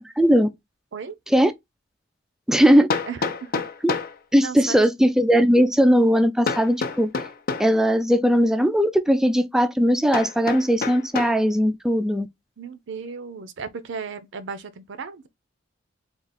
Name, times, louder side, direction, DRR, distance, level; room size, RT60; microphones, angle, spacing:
voice 1, 0.2-0.5 1.3-1.5 2.5-2.9 3.8-3.9 4.3-7.1 7.6-12.3, equal, 5° right, 0.3 m, -19 dB
Hammer, 1.3-1.4 2.9-4.2 6.5-7.8 10.1-11.4, left 4 dB, 50° left, 0.5 m, -28 dB
voice 2, 3.1-3.6 4.4-4.8 12.6-15.3, right 5 dB, 65° right, 0.6 m, -35 dB
3.7 x 2.4 x 4.1 m
head